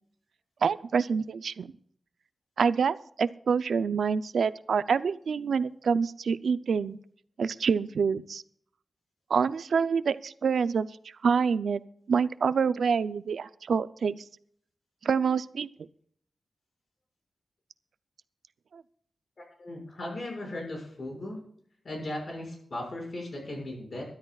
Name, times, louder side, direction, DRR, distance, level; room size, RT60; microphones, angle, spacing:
voice 1, 0.6-1.7 2.6-7.0 7.4-8.4 9.3-10.9 11.2-11.8 12.1-14.2 15.0-15.7 18.7-18.8, right 6 dB, 85° right, 14 dB, 0.5 m, -26 dB
voice 2, 19.6-21.4 21.8-24.0, left 1 dB, 40° left, 1 dB, 5.9 m, -37 dB
22.5 x 12.5 x 2.4 m, 0.64 s
wide cardioid pair, 175°, 0 cm